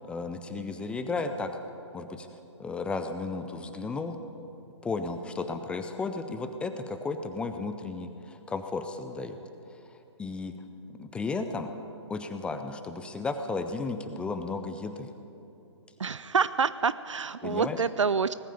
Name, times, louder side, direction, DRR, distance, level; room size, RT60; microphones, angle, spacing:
voice 1, 0.0-1.5 1.9-2.3 2.6-4.2 4.8-9.5 9.9-10.6 10.9-11.7 12.1-15.1 17.4-17.8, left 3 dB, 5° left, 8 dB, 0.5 m, -34 dB
voice 2, 16.0-18.3, right 5 dB, 75° right, 15 dB, 0.5 m, -27 dB
19.0 x 9.1 x 8.3 m, 2.9 s
figure-of-eight pair, 130°, 16 cm